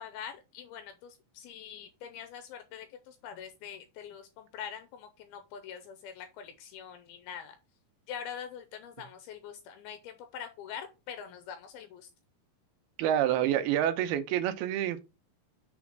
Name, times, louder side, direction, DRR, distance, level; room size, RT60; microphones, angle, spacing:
voice 1, 0.0-7.6 8.1-12.1, left 8 dB, 80° left, 2.7 m, -44 dB
voice 2, 13.0-15.0, right 11 dB, 80° right, 2.8 m, -27 dB
6.2 x 4.2 x 5.9 m
omnidirectional pair, 4.4 m